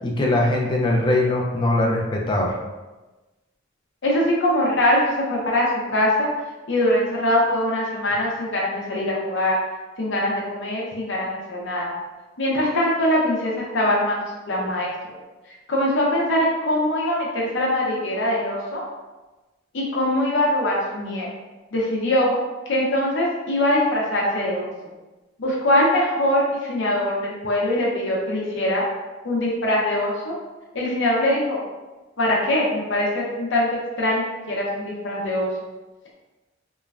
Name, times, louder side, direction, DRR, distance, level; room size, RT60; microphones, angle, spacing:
voice 1, 0.0-2.6, left 1 dB, 25° left, -1 dB, 0.4 m, -21 dB
voice 2, 4.0-5.0 5.3-6.3 6.7-9.6 10.0-11.9 12.4-14.9 15.7-18.8 19.7-21.3 21.7-22.3 22.7-24.7 25.4-28.8 29.2-30.3 30.7-31.6 32.2-35.5, left 1 dB, 65° left, -3 dB, 0.7 m, -22 dB
3.0 x 2.2 x 2.4 m, 1.1 s
head